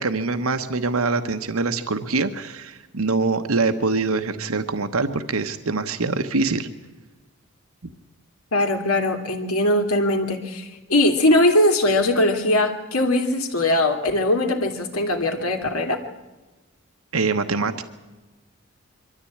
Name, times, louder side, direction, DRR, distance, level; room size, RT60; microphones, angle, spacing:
voice 1, 0.0-6.7 17.1-17.8, right 3 dB, 85° right, 8 dB, 1.1 m, -24 dB
voice 2, 8.5-16.0, left 1 dB, 90° left, 5 dB, 2.6 m, -20 dB
23.5 x 13.5 x 8.7 m, 1.2 s
head